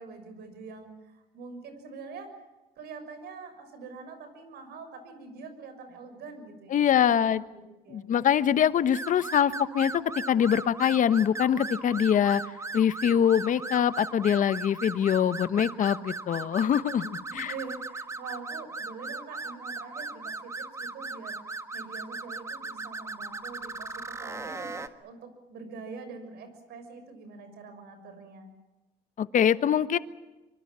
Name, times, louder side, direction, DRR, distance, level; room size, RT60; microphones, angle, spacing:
voice 1, 0.0-2.3 2.8-7.4 7.8-8.1 16.9-24.7 25.0-28.5, right 4 dB, 75° right, 9 dB, 6.2 m, -44 dB
voice 2, 6.7-7.4 7.9-10.0 10.3-12.4 12.7-17.5 29.2-30.0, left 9 dB, 50° left, 13 dB, 1.2 m, -24 dB
sound 1, 8.9-24.9, right 3 dB, 15° right, 1.6 m, -38 dB
25.0 x 24.5 x 7.5 m, 1.1 s
cardioid pair, 110°, 17 cm